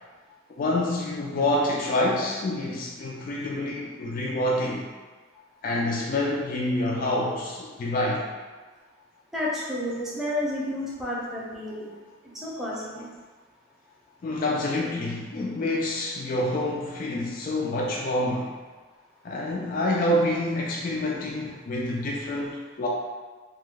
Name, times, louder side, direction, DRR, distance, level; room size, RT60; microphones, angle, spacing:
voice 1, 0.5-4.9 5.6-8.3 14.2-18.5 19.2-22.9, left 1 dB, 45° left, -2 dB, 0.3 m, -27 dB
voice 2, 9.3-11.9 12.4-13.1, left 1 dB, ahead, -7 dB, 0.6 m, -30 dB
2.9 x 2.1 x 3.6 m, 1.3 s
head